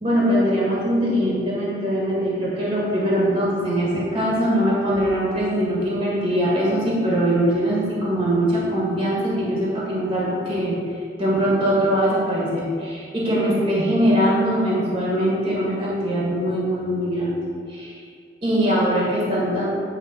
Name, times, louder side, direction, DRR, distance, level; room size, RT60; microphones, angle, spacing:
voice 1, 0.0-10.8 11.2-17.4 17.7-18.0 18.4-19.7, equal, 30° right, -5 dB, 1.5 m, -22 dB
9.1 x 3.3 x 4.3 m, 2.2 s
head